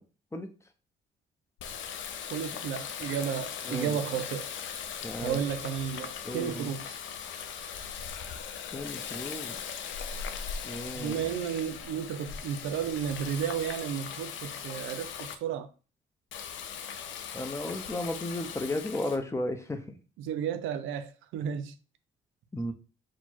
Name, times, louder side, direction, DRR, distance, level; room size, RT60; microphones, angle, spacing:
Water tap faucet, 1.6-15.3 16.3-19.2, left 7 dB, 75° left, 0.5 m, -39 dB
voice 1, 2.3-4.5 5.2-7.0 10.9-15.7 20.2-21.7, right 8 dB, 90° right, 0.5 m, -33 dB
voice 2, 3.6-4.0 5.0-5.4 6.2-6.7 8.7-9.6 10.6-11.2 17.3-20.0 22.5-22.7, left 1 dB, 15° left, 0.6 m, -34 dB
4.4 x 2.1 x 4.3 m
cardioid pair, 90°, 20 cm